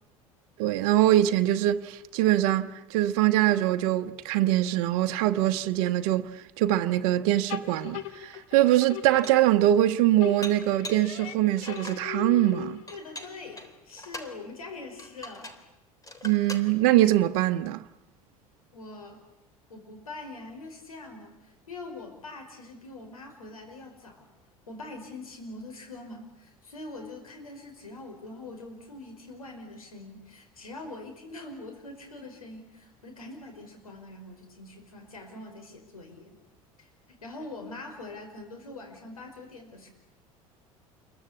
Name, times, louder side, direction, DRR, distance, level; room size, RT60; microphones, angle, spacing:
voice 1, 0.6-6.3 6.6-12.8 16.2-17.8, right 14 dB, 60° right, 1.0 m, -23 dB
sound 1, 7.5-9.9 10.2-13.0, left 12 dB, 65° left, 1.7 m, -39 dB
Dishes pots and pans, 8.3-8.4 8.9-9.5 10.4-11.1 11.6-12.1 12.9-14.4 15.0-15.7 16.0-16.7, left 1 dB, 20° left, 3.6 m, -42 dB
voice 2, 12.9-15.5 18.7-19.2 19.7-24.3 24.7-36.4 36.8-39.9, left 2 dB, 85° left, 5.2 m, -43 dB
28.5 x 23.0 x 8.4 m
figure-of-eight pair, 70°, 18 cm